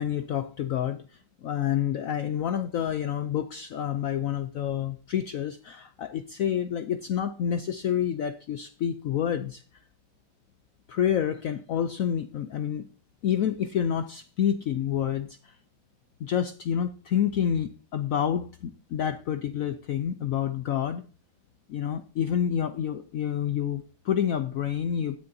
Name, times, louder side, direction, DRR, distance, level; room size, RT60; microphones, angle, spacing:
voice 1, 0.0-9.6 10.9-12.9 13.2-15.6 16.2-21.0 21.7-25.2, left 9 dB, 80° left, 0.7 m, -28 dB
16.5 x 9.5 x 2.7 m
omnidirectional pair, 2.2 m